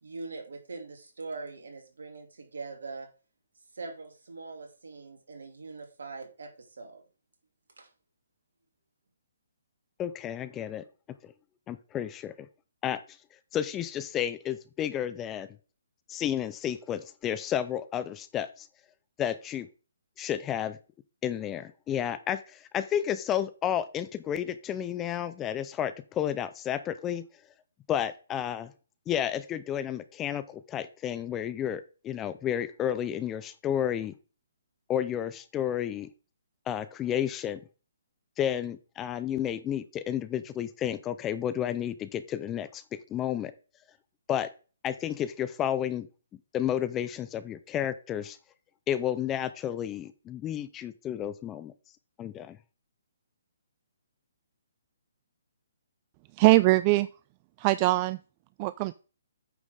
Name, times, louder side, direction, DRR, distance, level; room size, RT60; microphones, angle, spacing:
voice 1, 0.0-3.1 3.7-7.0 7.8-7.9, right 3 dB, 70° right, 3 dB, 2.7 m, -42 dB
voice 2, 10.0-10.8 11.2-11.3 11.7-12.3 12.8-13.0 13.5-15.5 16.1-18.7 19.2-19.7 20.2-20.8 21.2-27.2 27.9-28.7 29.1-34.1 34.9-36.1 36.7-37.6 38.4-43.5 44.3-44.5 44.8-46.1 46.5-48.4 48.9-51.7 52.2-52.6, left 10 dB, 20° left, 13 dB, 0.6 m, -31 dB
voice 3, 56.4-57.1 57.6-58.2 58.6-58.9, right 20 dB, 30° right, 16 dB, 0.3 m, -22 dB
9.1 x 6.1 x 3.6 m, 0.34 s
figure-of-eight pair, 135°, 0 cm